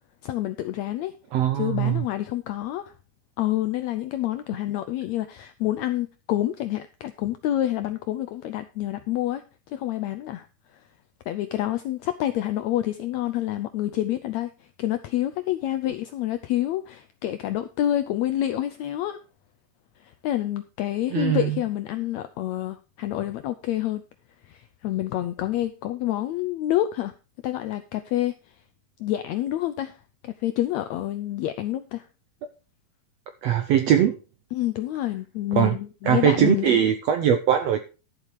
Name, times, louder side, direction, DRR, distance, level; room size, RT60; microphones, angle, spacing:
voice 1, 0.2-1.1 1.5-2.9 3.4-10.5 10.7-10.8 11.3-19.2 20.0-24.0 24.4-27.1 27.4-28.4 29.0-30.0 30.2-32.1 34.5-36.8, left 13 dB, 80° left, 10 dB, 1.6 m, -28 dB
voice 2, 1.3-2.0 21.1-21.5 33.4-34.2 35.6-35.7 36.1-37.8, right 9 dB, 75° right, 8 dB, 1.5 m, -21 dB
12.0 x 7.3 x 4.6 m, 0.34 s
omnidirectional pair, 3.9 m